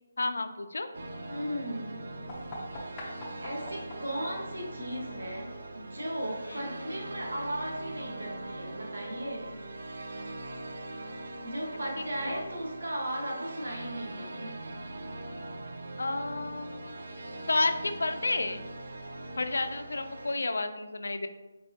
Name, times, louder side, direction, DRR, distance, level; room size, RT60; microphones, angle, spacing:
voice 1, 0.2-0.9 6.5-6.7 12.0-12.4 16.0-17.0 17.5-18.6 19.4-21.3, left 2 dB, 85° left, 9 dB, 0.4 m, -31 dB
sound 1, 0.9-20.3, right 2 dB, 60° right, 0.4 m, -41 dB
voice 2, 1.3-2.0 3.4-9.6 11.4-14.5, right 1 dB, 90° right, -2 dB, 1.2 m, -36 dB
sound 2, 2.3-7.8, left 1 dB, 10° left, 0.5 m, -47 dB
4.5 x 3.2 x 2.7 m, 1.1 s
hypercardioid pair, 175°, 0 cm